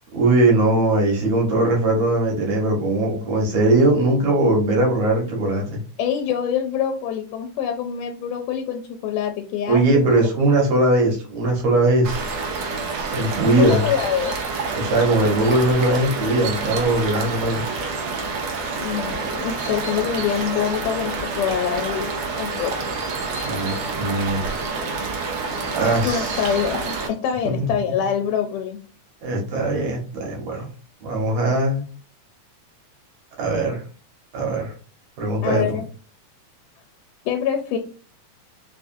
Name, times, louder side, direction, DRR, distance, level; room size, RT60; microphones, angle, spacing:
voice 1, 0.1-5.8 9.7-12.3 13.1-13.8 14.7-17.6 23.4-24.4 25.7-26.4 27.4-27.7 29.2-30.7 31.0-31.8 33.4-33.8 34.3-34.7 35.2-35.8, right 2 dB, 70° right, -1 dB, 2.3 m, -20 dB
voice 2, 6.0-9.8 13.5-14.4 18.8-22.9 26.0-28.8 35.4-35.9 37.3-37.8, left 8 dB, 90° left, 4 dB, 2.1 m, -25 dB
sound 1, 12.0-27.1, right 4 dB, 85° right, 1.2 m, -28 dB
5.0 x 2.4 x 2.5 m, 0.38 s
omnidirectional pair, 3.6 m